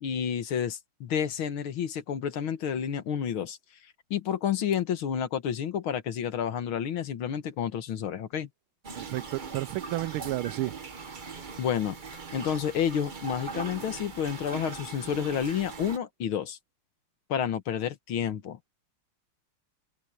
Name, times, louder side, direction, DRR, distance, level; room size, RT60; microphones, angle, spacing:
voice 1, 0.0-3.6 4.1-8.5 11.6-12.0 12.3-16.6 17.3-18.7, left 8 dB, 75° left, 2.1 m, -30 dB
sound 1, 8.8-16.0, right 5 dB, 35° right, 0.8 m, -40 dB
voice 2, 9.0-10.8, right 17 dB, 85° right, 1.5 m, -32 dB
omnidirectional pair, 2.3 m